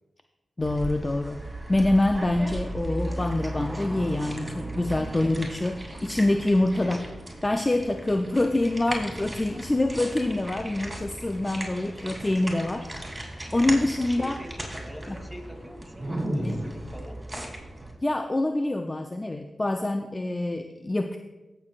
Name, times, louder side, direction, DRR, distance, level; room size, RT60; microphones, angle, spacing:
voice 1, 0.6-7.0 7.4-12.9 13.5-14.4 15.1-15.2 16.4-16.6 18.0-21.2, left 2 dB, 25° left, 6 dB, 0.5 m, -26 dB
sound 1, 0.6-17.9, right 1 dB, 20° right, 2.9 m, -36 dB
voice 2, 11.8-12.1 14.0-17.2, equal, 5° left, 2 dB, 2.6 m, -44 dB
16.5 x 6.8 x 2.5 m, 1.1 s
cardioid pair, 45°, 0 cm